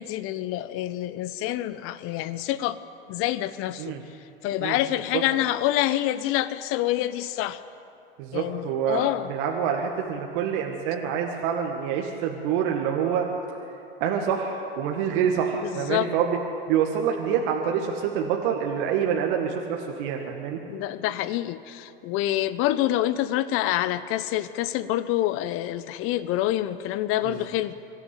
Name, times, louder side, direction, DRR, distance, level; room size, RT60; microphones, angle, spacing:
voice 1, 0.0-2.8 3.1-4.0 4.4-7.6 8.3-9.3 15.6-16.1 20.7-27.7, left 14 dB, 45° left, 14 dB, 1.1 m, -27 dB
voice 2, 8.2-13.3 14.0-16.4 16.7-20.6 27.3-27.4, right 8 dB, 55° right, 1 dB, 1.9 m, -26 dB
24.0 x 13.5 x 8.3 m, 2.7 s
hypercardioid pair, 95°, 30 cm